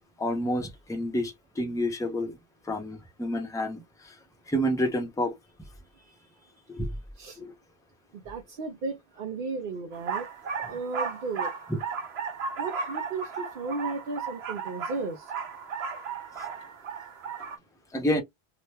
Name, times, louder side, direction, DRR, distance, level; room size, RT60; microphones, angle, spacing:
voice 1, 0.2-2.3 2.7-4.1 4.5-5.3 6.7-6.9 7.4-7.5 11.7-11.8 16.4-16.5 17.9-18.2, equal, 5° left, 0.6 m, -29 dB
voice 2, 6.0-6.5 7.2-7.4 8.1-10.3 10.7-11.5 12.6-15.3, right 3 dB, 60° right, 0.7 m, -35 dB
sound 1, 9.9-17.6, right 6 dB, 75° right, 1.1 m, -35 dB
2.9 x 2.1 x 3.2 m
omnidirectional pair, 1.1 m